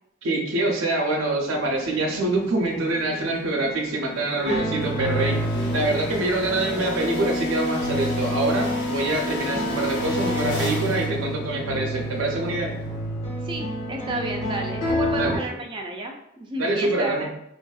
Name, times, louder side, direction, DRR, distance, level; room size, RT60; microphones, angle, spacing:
voice 1, 0.2-5.4 5.7-12.7 15.1-15.6 16.6-17.3, right 2 dB, 85° right, 1 dB, 0.6 m, -25 dB
sound 1, 1.4-13.3, left 1 dB, 60° left, 0.8 m, -31 dB
sound 2, 4.4-15.4, equal, 90° left, 1.4 m, -29 dB
voice 2, 13.5-17.3, right 1 dB, 25° right, 2 dB, 0.3 m, -32 dB
4.7 x 2.6 x 2.3 m, 0.80 s
head